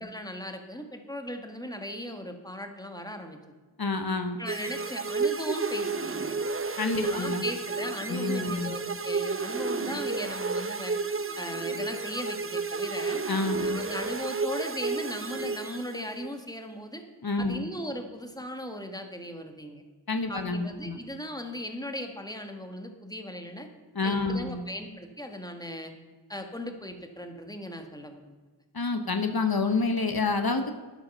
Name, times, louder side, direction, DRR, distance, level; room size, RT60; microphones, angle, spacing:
voice 1, 0.0-3.4 4.4-6.4 7.0-10.9 11.4-13.2 13.6-17.0 17.4-19.8 20.3-23.7 24.0-25.9 26.3-28.3, left 1 dB, 10° left, 5 dB, 1.7 m, -38 dB
voice 2, 3.8-4.4 6.8-7.4 8.1-8.7 13.3-13.8 17.2-17.7 20.1-21.0 23.9-24.6 28.7-30.7, left 3 dB, 65° left, 7 dB, 1.1 m, -28 dB
sound 1, 4.5-16.3, right 4 dB, 35° right, 0.7 m, -31 dB
12.0 x 11.5 x 5.6 m, 1.3 s
wide cardioid pair, 45°, 39 cm